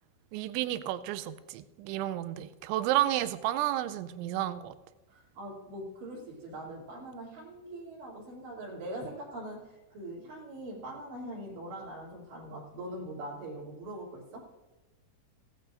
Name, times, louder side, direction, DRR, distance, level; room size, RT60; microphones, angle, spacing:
voice 1, 0.3-4.7, right 13 dB, 85° right, 12 dB, 3.0 m, -31 dB
voice 2, 5.1-14.5, right 1 dB, 65° right, -4 dB, 5.0 m, -42 dB
16.5 x 16.0 x 2.5 m, 1.1 s
omnidirectional pair, 5.5 m